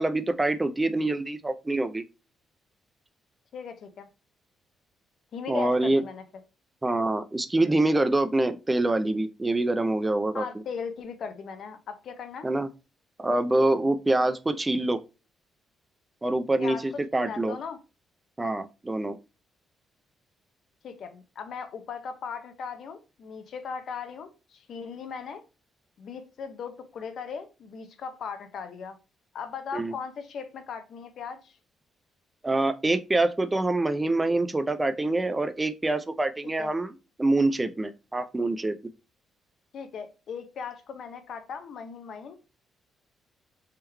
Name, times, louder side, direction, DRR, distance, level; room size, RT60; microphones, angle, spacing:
voice 1, 0.0-2.0 5.5-6.0 6.8-10.4 12.4-12.7 13.2-15.0 16.2-17.6 18.4-19.2 29.7-29.9 32.4-36.9 37.2-38.7, right 2 dB, 15° right, 0.4 m, -25 dB
voice 2, 3.5-4.0 5.3-6.2 10.3-12.5 16.6-17.8 20.8-25.4 26.0-29.0 29.3-31.6 36.4-36.7 39.7-42.4, left 6 dB, 60° left, 0.7 m, -38 dB
3.6 x 3.0 x 3.3 m
cardioid pair, 125°, 0 cm